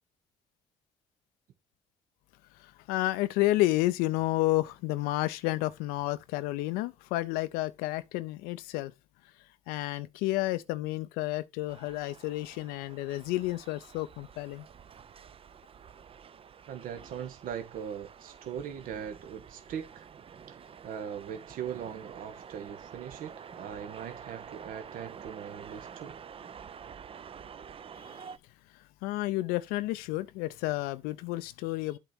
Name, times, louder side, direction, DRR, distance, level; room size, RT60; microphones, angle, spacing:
voice 1, 2.5-8.9 9.4-14.7 28.0-28.2 28.7-32.0, left 17 dB, 80° left, 0.5 m, -31 dB
sound 1, 11.7-28.4, right 7 dB, 35° right, 0.5 m, -49 dB
voice 2, 16.7-20.1 20.5-26.2, right 8 dB, 65° right, 1.2 m, -40 dB
8.1 x 2.9 x 6.0 m
supercardioid pair, 65°, 16 cm